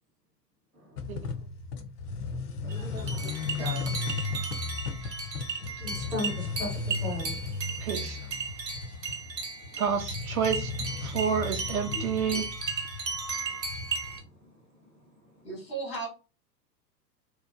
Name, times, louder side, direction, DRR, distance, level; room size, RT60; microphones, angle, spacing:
voice 1, 0.7-1.4 2.3-3.2 5.4-7.4 9.6-9.9 11.9-12.4 13.3-13.5 14.0-14.9 15.2-15.4, left 2 dB, 5° left, -6 dB, 0.4 m, -40 dB
sound 1, 1.0-14.2, left 4 dB, 65° left, 0.5 m, -36 dB
sound 2, 2.7-14.2, right 4 dB, 80° right, 0.8 m, -36 dB
voice 2, 3.0-4.0 15.4-16.1, right 3 dB, 90° left, -4 dB, 1.4 m, -38 dB
voice 3, 7.8-8.3 9.8-10.7 11.0-12.5, right 7 dB, 60° right, 5 dB, 0.5 m, -29 dB
2.8 x 2.1 x 2.3 m, 0.33 s
figure-of-eight pair, 100°, 50 cm